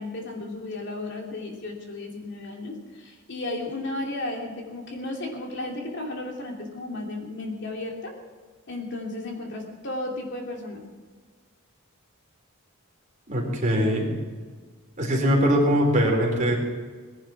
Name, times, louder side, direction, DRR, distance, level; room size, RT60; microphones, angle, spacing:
voice 1, 0.0-8.1 8.7-10.8, left 2 dB, 55° left, 1 dB, 2.9 m, -34 dB
voice 2, 13.3-14.1 15.0-16.6, equal, 35° right, -1 dB, 3.9 m, -21 dB
19.0 x 11.0 x 6.0 m, 1.5 s
head